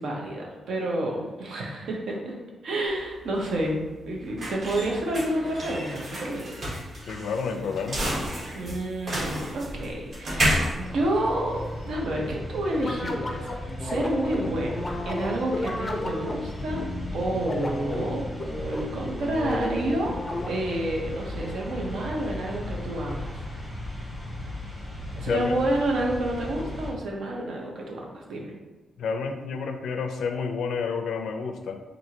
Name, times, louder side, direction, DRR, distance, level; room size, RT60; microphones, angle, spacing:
voice 1, 0.0-2.4 2.6-6.6 8.5-13.5 13.8-16.8 17.1-18.2 18.6-20.1 20.5-23.3 25.2-28.5, right 1 dB, 75° right, -1 dB, 0.8 m, -29 dB
sound 1, 2.9-11.9, equal, 45° right, 1.2 m, -31 dB
voice 2, 7.1-8.1 25.2-25.6 29.0-31.8, left 5 dB, 80° left, 6 dB, 0.4 m, -30 dB
sound 2, 10.8-26.9, left 1 dB, 15° right, 1.0 m, -37 dB
sound 3, 12.7-20.8, left 1 dB, 20° left, 0.4 m, -33 dB
4.4 x 2.6 x 2.8 m, 1.3 s
wide cardioid pair, 135°, 0 cm